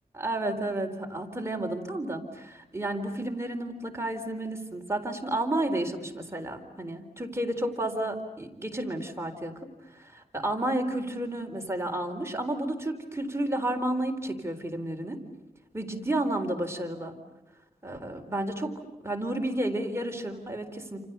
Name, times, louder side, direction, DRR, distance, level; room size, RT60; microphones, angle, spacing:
voice 1, 0.1-9.5 9.9-15.2 15.7-17.2 17.8-18.7 19.0-21.1, right 1 dB, 15° right, 3 dB, 4.0 m, -31 dB
29.0 x 29.0 x 6.9 m, 1.0 s
wide cardioid pair, 85°, 15 cm